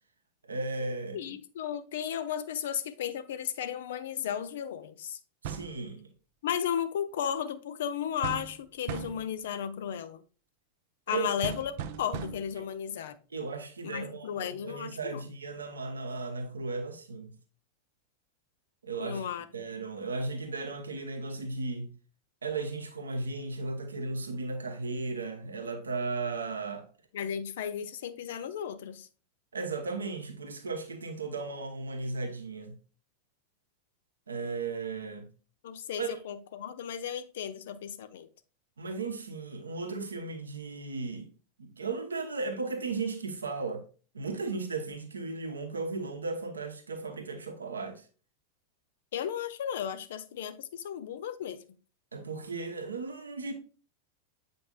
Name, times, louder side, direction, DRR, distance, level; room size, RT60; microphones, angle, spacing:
voice 1, 0.4-1.2 5.4-6.1 11.1-11.3 12.6-12.7 13.3-17.3 18.8-19.3 19.5-22.0 22.4-26.9 29.5-32.8 34.3-35.3 36.0-36.1 38.8-41.3 41.6-43.8 44.1-48.1 52.1-53.5, right 3 dB, 75° right, 0.9 m, -36 dB
voice 2, 1.1-5.2 6.4-10.2 11.1-11.7 12.0-13.2 13.8-15.2 19.0-19.5 27.1-29.1 35.6-38.3 49.1-51.6, left 9 dB, 60° left, 0.5 m, -34 dB
sound 1, 5.4-5.8 8.2-8.6 8.9-9.3 11.4-12.6, right 9 dB, 50° right, 0.5 m, -38 dB
7.9 x 5.2 x 2.4 m
figure-of-eight pair, 90°, 0 cm